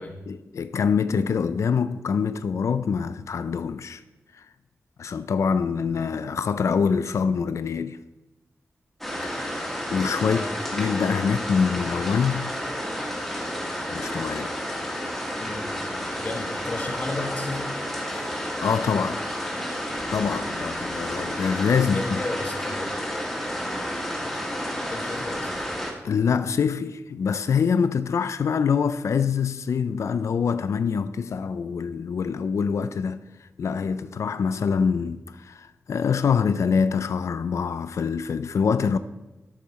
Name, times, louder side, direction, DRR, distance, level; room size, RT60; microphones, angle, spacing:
voice 1, 0.3-4.0 4.4-4.5 5.0-8.0 9.2-10.4 10.7-12.5 13.9-14.5 18.1-18.3 18.6-19.2 20.1-22.2 26.0-33.2 33.6-39.0, left 6 dB, 75° left, 0.4 m, -25 dB
sound 1, 9.0-25.9, equal, ahead, 1.7 m, -31 dB
voice 2, 10.2-10.5 11.5-11.7 15.4-15.7 16.2-17.7 21.8-22.9 24.2-24.4 24.9-25.7, left 2 dB, 35° left, 1.1 m, -34 dB
13.0 x 6.7 x 4.2 m
wide cardioid pair, 140°, 5 cm